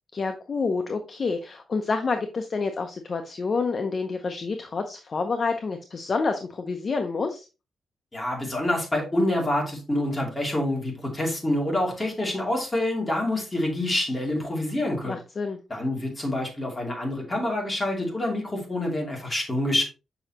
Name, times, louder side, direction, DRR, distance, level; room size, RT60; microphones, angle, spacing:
voice 1, 0.1-7.5 15.0-15.6, left 4 dB, 35° left, 6 dB, 0.6 m, -28 dB
voice 2, 8.1-15.2 15.7-19.8, left 1 dB, 15° left, -1 dB, 2.5 m, -27 dB
7.0 x 5.5 x 2.9 m, 0.30 s
wide cardioid pair, 145°, 0 cm